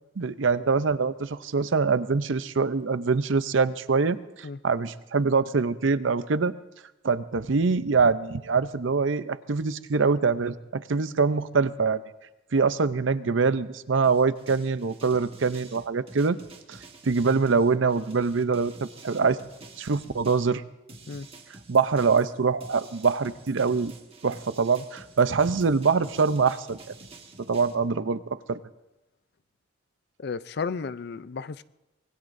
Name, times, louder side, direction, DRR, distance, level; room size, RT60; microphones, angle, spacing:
voice 1, 0.2-4.2 4.6-6.5 7.0-12.0 12.5-16.4 16.7-16.8 17.1-19.4 19.8-20.6 21.7-23.9 24.2-26.8 27.5-28.2 28.5-28.6, right 4 dB, 75° right, 0.6 m, -24 dB
sound 1, 14.0-20.5 20.9-27.8, right 3 dB, 30° right, 1.5 m, -49 dB
voice 2, 30.2-31.6, left 5 dB, 55° left, 0.5 m, -33 dB
25.5 x 20.5 x 2.6 m
head